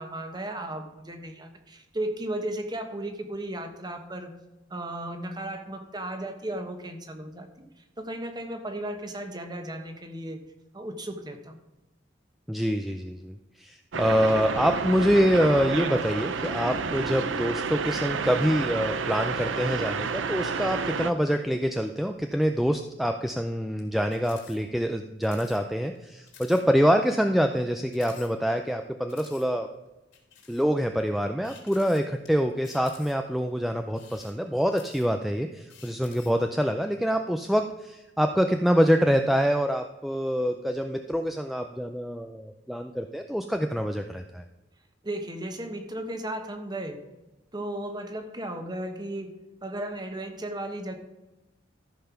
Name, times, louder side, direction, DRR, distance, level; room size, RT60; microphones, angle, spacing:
voice 1, 0.0-4.3 4.7-10.4 10.7-11.6 45.0-47.0 47.5-49.3 49.6-51.0, right 1 dB, 20° right, 6 dB, 1.2 m, -35 dB
voice 2, 12.5-29.7 30.5-44.4, equal, ahead, 5 dB, 0.4 m, -25 dB
sound 1, 13.9-21.1, right 5 dB, 90° right, 0.6 m, -30 dB
sound 2, 24.1-24.6 24.9-25.0 25.2-25.6 26.0-26.1 26.3-26.6 27.1-27.2 27.9-28.7 29.1-29.5 30.1-30.7 31.4-32.3 32.6-33.3 33.9-35.3 35.7-36.4, left 7 dB, 85° left, 3.2 m, -51 dB
14.0 x 5.6 x 5.8 m, 1.0 s
head